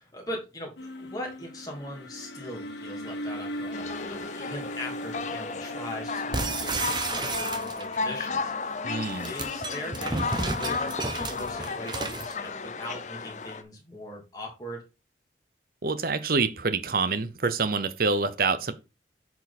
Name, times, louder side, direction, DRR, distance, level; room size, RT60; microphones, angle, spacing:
voice 1, 0.0-14.8, left 1 dB, 20° left, 2.7 m, -40 dB
sound 1, 0.8-7.1, equal, 90° left, 1.5 m, -39 dB
sound 2, 3.7-13.6, left 4 dB, 40° left, 0.6 m, -33 dB
sound 3, 6.3-8.0 9.0-12.3, right 3 dB, 25° right, 0.8 m, -32 dB
voice 2, 8.8-9.3 15.8-18.7, right 4 dB, 55° right, 0.8 m, -26 dB
8.1 x 4.6 x 4.2 m
head